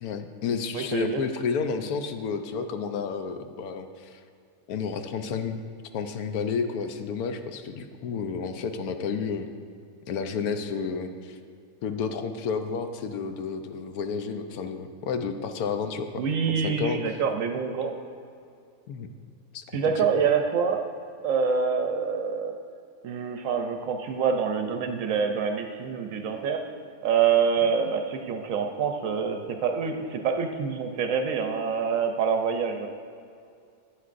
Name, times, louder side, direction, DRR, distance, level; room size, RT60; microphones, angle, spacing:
voice 1, 0.0-4.2 4.7-5.6 5.9-9.5 10.1-11.4 11.8-16.2 16.6-17.0 18.9-19.1 19.5-19.6 20.0-20.1, left 5 dB, 75° left, 7 dB, 1.1 m, -31 dB
voice 2, 0.7-1.2 16.2-18.0 19.7-20.8 21.2-22.6 23.0-26.6 27.0-32.9, right 6 dB, 65° right, 5 dB, 0.9 m, -26 dB
11.5 x 8.3 x 2.5 m, 2.4 s
omnidirectional pair, 1.6 m